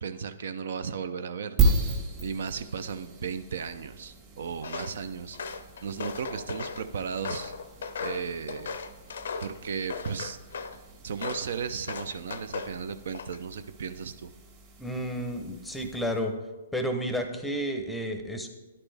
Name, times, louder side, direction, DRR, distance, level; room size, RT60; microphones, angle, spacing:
voice 1, 0.0-7.5 8.0-8.8 9.4-10.4 11.0-14.3, right 6 dB, 65° right, 11 dB, 0.4 m, -35 dB
sound 1, 1.6-16.3, right 3 dB, 35° right, 1.4 m, -35 dB
Walk footsteps, 4.6-5.0 5.3-6.8 7.2-9.6 9.9-10.8 11.2-11.5 11.9-12.8 13.1-13.6, left 5 dB, 70° left, 0.5 m, -37 dB
voice 2, 14.8-16.3 16.7-18.5, equal, 5° left, 5 dB, 0.6 m, -31 dB
10.5 x 4.2 x 3.3 m, 1.2 s
hypercardioid pair, 135°, 0 cm